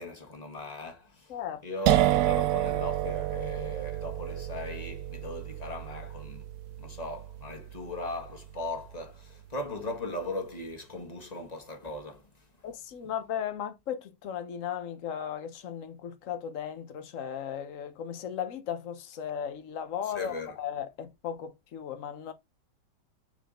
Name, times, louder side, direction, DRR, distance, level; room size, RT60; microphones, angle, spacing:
voice 1, 0.0-6.4 6.8-12.5 20.0-20.6, left 2 dB, 25° left, 1.6 m, -38 dB
voice 2, 1.3-1.6 12.6-22.3, left 9 dB, 50° left, 1.2 m, -36 dB
sound 1, 1.9-9.4, right 13 dB, 70° right, 1.1 m, -30 dB
6.8 x 4.9 x 3.8 m
omnidirectional pair, 1.9 m